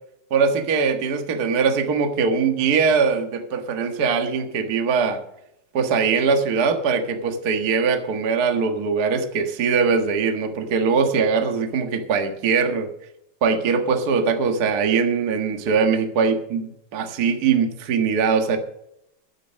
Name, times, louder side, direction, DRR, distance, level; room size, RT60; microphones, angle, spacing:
voice 1, 0.3-5.2 5.7-12.9 13.4-18.6, right 5 dB, 70° right, 5 dB, 0.9 m, -21 dB
12.0 x 9.0 x 6.3 m, 0.79 s
omnidirectional pair, 4.3 m